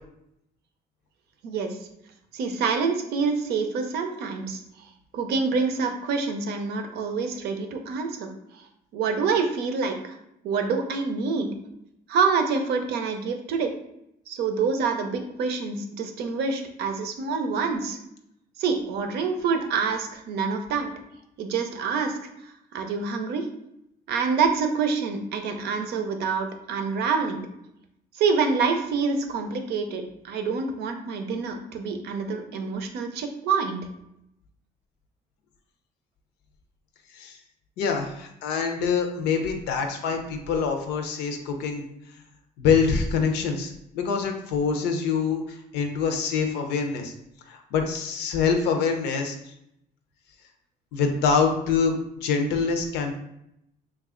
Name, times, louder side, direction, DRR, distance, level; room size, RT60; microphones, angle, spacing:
voice 1, 1.4-1.8 2.3-4.6 5.1-8.6 8.9-10.2 10.4-11.5 12.1-13.7 14.3-18.0 18.6-20.9 21.4-22.2 22.7-23.5 24.1-27.4 28.1-33.8, right 5 dB, 75° right, 6 dB, 0.6 m, -26 dB
voice 2, 37.8-41.9 42.6-45.4 45.7-47.1 47.5-49.4 50.9-53.2, left 5 dB, 85° left, 4 dB, 0.6 m, -25 dB
3.2 x 2.3 x 3.6 m, 0.79 s
cardioid pair, 110°, 17 cm